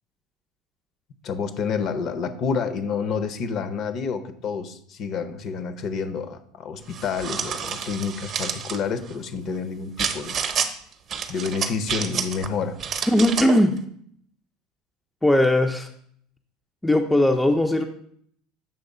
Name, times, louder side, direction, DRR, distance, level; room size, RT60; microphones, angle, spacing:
voice 1, 1.2-10.4 11.3-12.8, left 5 dB, 45° left, 10 dB, 0.7 m, -29 dB
sound 1, 6.9-8.8 10.0-10.7 11.1-12.5 12.8-13.6, right 7 dB, 35° right, 0.7 m, -29 dB
voice 2, 13.1-13.8 15.2-15.9 16.8-17.8, left 1 dB, 5° left, 5 dB, 0.4 m, -19 dB
7.1 x 3.2 x 5.3 m, 0.65 s
supercardioid pair, 135°, 0 cm